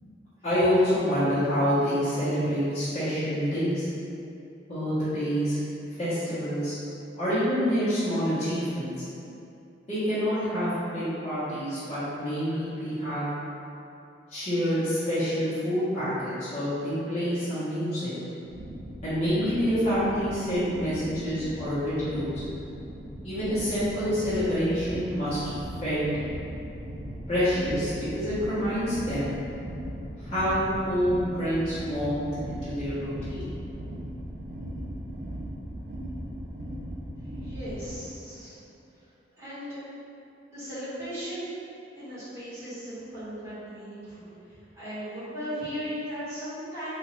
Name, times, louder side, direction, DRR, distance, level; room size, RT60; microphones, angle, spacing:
voice 1, 0.4-3.9 4.7-5.6 6.0-6.7 7.2-8.9 9.9-13.3 14.3-18.1 19.0-22.4 23.2-25.4 25.8-26.1 27.3-29.3 30.2-33.5, equal, 35° left, -16 dB, 1.2 m, -27 dB
sound 1, 18.4-37.9, equal, 50° right, 0.4 m, -38 dB
voice 2, 37.3-38.6 39.4-39.8 40.5-41.4 41.9-44.3 44.8-46.9, equal, 15° right, -16 dB, 1.4 m, -37 dB
2.7 x 2.5 x 3.2 m, 2.6 s
head